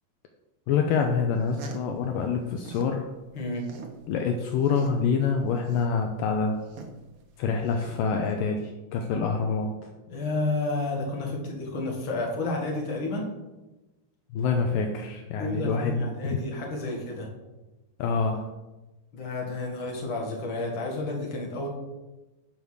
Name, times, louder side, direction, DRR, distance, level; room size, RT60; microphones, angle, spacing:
voice 1, 0.7-3.1 4.1-6.6 7.4-9.9 14.3-16.4 18.0-18.5, left 5 dB, 75° left, 4 dB, 2.2 m, -26 dB
sound 1, 1.3-3.0 3.3-8.3, right 5 dB, 85° right, 1.2 m, -44 dB
voice 2, 10.1-13.3 15.4-17.3 19.1-21.7, left 2 dB, 40° left, -1 dB, 2.3 m, -31 dB
9.1 x 5.3 x 6.4 m, 1.1 s
omnidirectional pair, 4.2 m